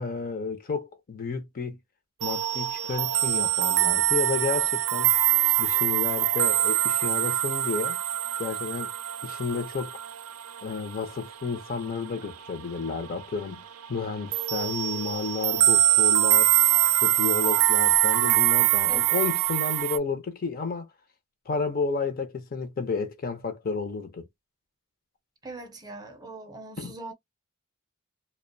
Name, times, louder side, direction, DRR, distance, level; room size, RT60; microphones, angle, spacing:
voice 1, 0.0-1.8 2.2-5.1 5.6-8.0 8.4-8.9 9.2-10.0 10.6-16.5 17.0-20.9 21.5-24.3 26.8-26.9, left 4 dB, 40° left, 0.5 m, -31 dB
sound 1, 2.2-12.6 12.9-13.2 13.5-20.0, right 14 dB, 70° right, 0.4 m, -24 dB
voice 2, 18.9-19.2 25.4-27.1, right 3 dB, 15° right, 0.5 m, -41 dB
2.4 x 2.1 x 2.5 m
head